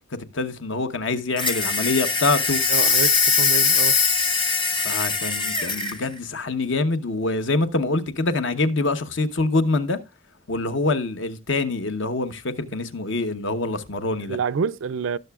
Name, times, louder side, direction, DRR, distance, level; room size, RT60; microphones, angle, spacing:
voice 1, 0.1-2.6 4.8-10.0 10.5-14.4, left 3 dB, 65° left, 1.0 m, -25 dB
sound 1, 1.4-6.0, left 5 dB, 25° left, 1.0 m, -21 dB
voice 2, 2.7-4.0 14.3-15.2, right 6 dB, 80° right, 0.4 m, -27 dB
18.5 x 6.7 x 2.3 m
head